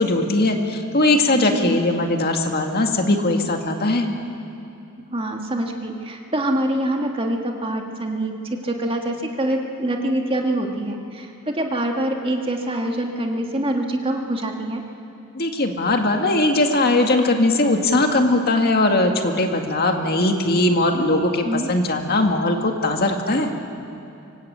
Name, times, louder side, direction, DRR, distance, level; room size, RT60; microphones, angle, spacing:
voice 1, 0.0-4.1 15.3-23.5, left 2 dB, 50° left, 3 dB, 1.9 m, -20 dB
voice 2, 1.3-1.8 5.1-8.3 8.6-14.8 21.4-21.7, right 1 dB, 25° right, 2 dB, 1.9 m, -25 dB
24.5 x 19.5 x 8.7 m, 2.7 s
head